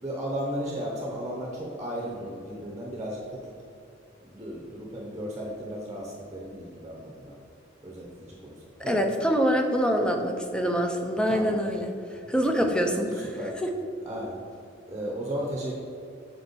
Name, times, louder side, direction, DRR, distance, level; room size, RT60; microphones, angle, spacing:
voice 1, 0.0-3.5 4.2-7.3 7.8-9.0 11.3-11.6 12.6-12.8 13.1-13.6 14.1-14.4 14.9-15.8, equal, 20° right, -3 dB, 0.8 m, -35 dB
voice 2, 8.8-13.3 13.6-13.7, equal, 5° left, 3 dB, 0.5 m, -25 dB
6.8 x 4.4 x 4.1 m, 2.6 s
head